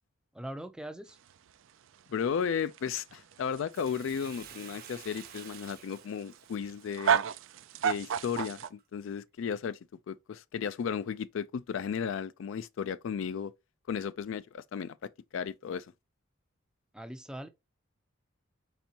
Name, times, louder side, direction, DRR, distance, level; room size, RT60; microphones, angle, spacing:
voice 1, 0.3-1.2 16.9-17.5, right 1 dB, 5° right, 0.4 m, -41 dB
sound 1, 1.1-8.7, right 8 dB, 65° right, 0.4 m, -33 dB
voice 2, 2.1-7.2 7.8-9.8 10.1-13.5 13.9-15.0 15.3-15.9, left 7 dB, 65° left, 0.3 m, -34 dB
Bathtub (filling or washing), 3.7-8.2 8.8-8.9, right 8 dB, 45° right, 0.8 m, -51 dB
4.4 x 4.2 x 2.8 m
head